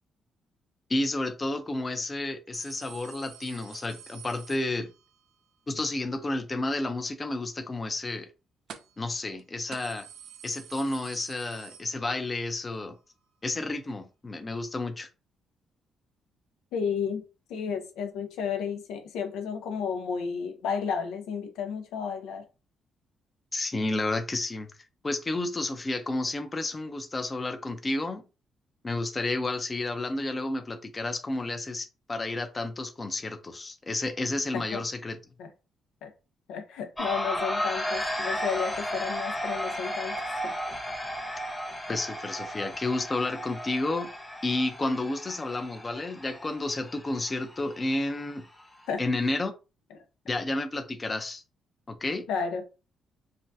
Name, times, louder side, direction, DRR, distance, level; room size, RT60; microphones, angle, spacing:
voice 1, 0.9-4.9 5.7-8.3 9.0-10.1 10.4-13.0 13.4-15.1 23.5-24.7 25.0-28.2 28.8-35.2 41.9-44.1 44.4-48.4 49.0-49.5 50.3-51.4 51.9-52.3, left 2 dB, 25° left, 0.5 m, -31 dB
sound 1, 2.5-5.2 8.7-9.1 9.4-9.5 9.7-12.4 12.8-12.9 13.9-14.0, right 8 dB, 70° right, 0.4 m, -47 dB
voice 2, 16.7-17.2 17.5-22.5 34.5-34.8 35.4-35.5 36.0-36.1 36.5-40.5 48.9-49.0 49.9-50.0 52.3-52.6, left 6 dB, 90° left, 0.5 m, -32 dB
sound 2, 37.0-48.9, equal, 10° left, 0.9 m, -34 dB
3.4 x 2.2 x 2.6 m
cardioid pair, 90°, 0 cm